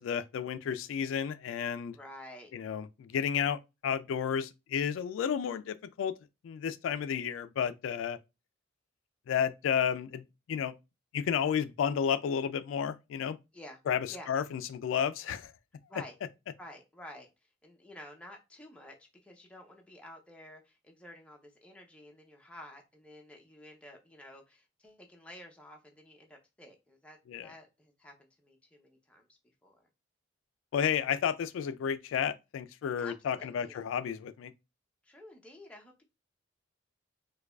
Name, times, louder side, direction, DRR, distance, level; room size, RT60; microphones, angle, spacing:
voice 1, 0.0-2.0 2.5-6.1 6.4-8.2 9.3-10.7 11.1-13.4 13.9-15.5 27.3-27.5 30.7-34.5, left 8 dB, 85° left, 0.3 m, -32 dB
voice 2, 1.9-2.5 13.5-13.8 14.1-14.3 15.9-16.1 16.6-29.9 33.0-33.8 35.0-36.0, left 1 dB, 5° left, 0.6 m, -51 dB
4.6 x 2.3 x 2.3 m
head